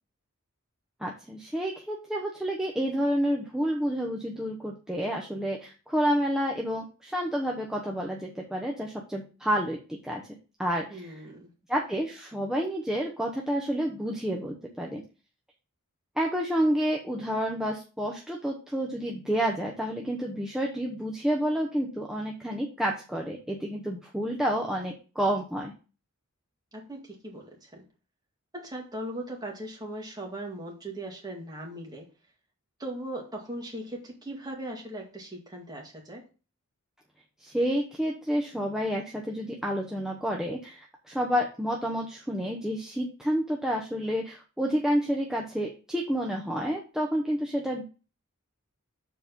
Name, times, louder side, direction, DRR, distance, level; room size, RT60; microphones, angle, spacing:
voice 1, 1.0-10.2 10.6-11.2 11.7-15.0 16.2-25.7 37.4-47.8, equal, 5° right, -1 dB, 0.8 m, -29 dB
voice 2, 10.9-11.5 26.7-27.8 28.5-32.1 32.8-36.2, right 1 dB, 20° right, -1 dB, 2.0 m, -39 dB
7.2 x 4.1 x 5.3 m, 0.33 s
head